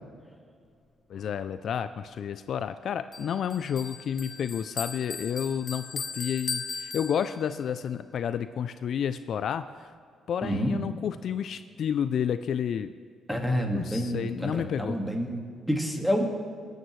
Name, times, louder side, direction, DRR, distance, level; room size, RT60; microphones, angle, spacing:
voice 1, 1.1-9.9 10.3-12.9 13.7-15.0, left 8 dB, 65° left, 11 dB, 0.4 m, -30 dB
Bell, 3.1-7.6, left 5 dB, 45° left, 0.9 m, -37 dB
voice 2, 10.4-10.8 13.3-16.4, equal, ahead, 2 dB, 1.8 m, -28 dB
19.5 x 9.1 x 3.2 m, 2.2 s
cardioid pair, 90°, 0 cm